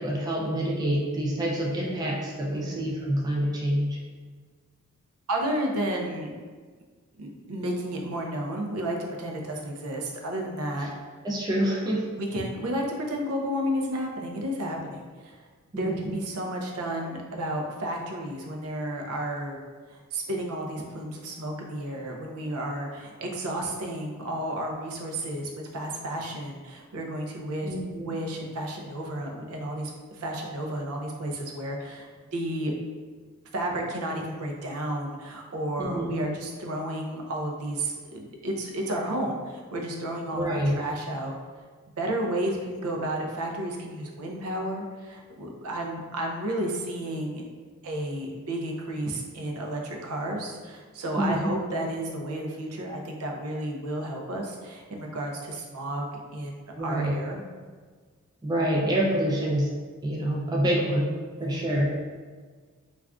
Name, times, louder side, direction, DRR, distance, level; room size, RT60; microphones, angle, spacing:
voice 1, 0.0-4.0 11.2-12.0 15.7-16.1 27.6-28.2 35.8-36.2 40.3-40.8 51.2-51.5 56.8-57.1 58.4-59.7 60.0-61.1 61.4-61.9, right 1 dB, 20° right, -3 dB, 0.3 m, -27 dB
voice 2, 2.5-2.9 5.3-6.3 7.2-10.9 12.2-15.4 15.8-19.6 19.9-27.7 28.0-32.7 33.5-41.3 42.0-47.4 47.8-56.1 56.3-57.4 61.4-61.7, right 1 dB, 85° right, 1 dB, 0.5 m, -32 dB
2.4 x 2.3 x 3.4 m, 1.5 s
head